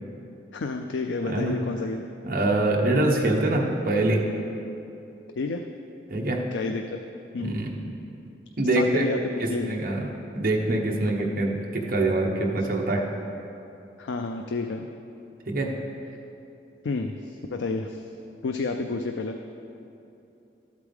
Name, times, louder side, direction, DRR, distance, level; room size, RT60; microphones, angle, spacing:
voice 1, 0.5-2.1 5.4-5.7 6.5-7.0 7.3-7.6 8.7-9.2 9.5-9.8 11.2-11.3 14.0-14.9 16.8-18.0 18.4-19.4, left 3 dB, 75° left, 5 dB, 0.4 m, -30 dB
voice 2, 2.2-4.2 6.1-6.4 7.4-7.7 8.6-9.1 9.4-13.0 15.5-15.7, right 2 dB, 50° right, -1 dB, 1.1 m, -24 dB
13.0 x 8.2 x 3.5 m, 2.8 s
head